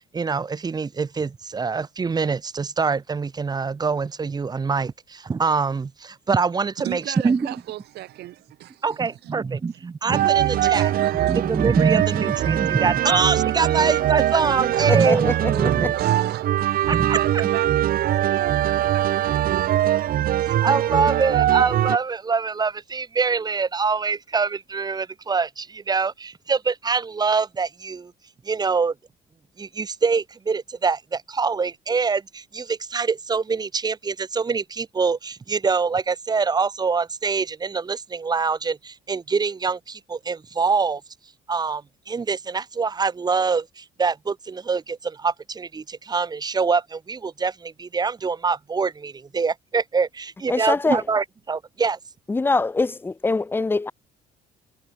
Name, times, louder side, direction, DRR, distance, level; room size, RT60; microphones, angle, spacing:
voice 1, 0.1-7.5 8.8-15.9 16.9-17.2 20.4-28.1 28.4-28.9 29.6-41.0 41.5-52.0, right 5 dB, 25° right, 1.2 m, -24 dB
voice 2, 6.8-9.3 9.7-9.8 10.6-11.6 12.1-12.2 14.5-19.3, right 15 dB, 75° right, 6.6 m, -35 dB
sound 1, 10.1-22.0, right 12 dB, 60° right, 1.1 m, -22 dB
voice 3, 14.9-15.9 50.5-51.0 52.3-53.9, left 3 dB, 10° left, 0.6 m, -24 dB
cardioid pair, 110°, 17 cm